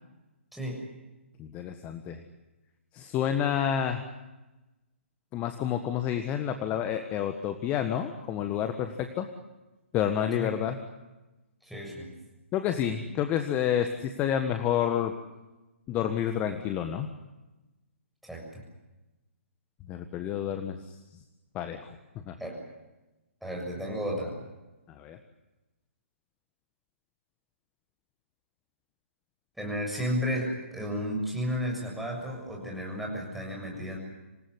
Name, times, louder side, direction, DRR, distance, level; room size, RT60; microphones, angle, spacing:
voice 1, 0.5-0.8 10.3-10.5 11.6-12.1 18.2-18.6 22.4-22.6 23.4-24.4 29.6-34.0, equal, ahead, -1 dB, 7.2 m, -33 dB
voice 2, 1.4-2.2 2.9-4.0 5.3-9.3 9.9-10.8 12.5-15.1 15.9-17.1 19.9-20.9 21.5-21.9 22.3-22.4 24.9-25.2, left 9 dB, 20° left, 7 dB, 1.6 m, -29 dB
27.0 x 19.0 x 9.8 m, 1.1 s
figure-of-eight pair, 130°, 7 cm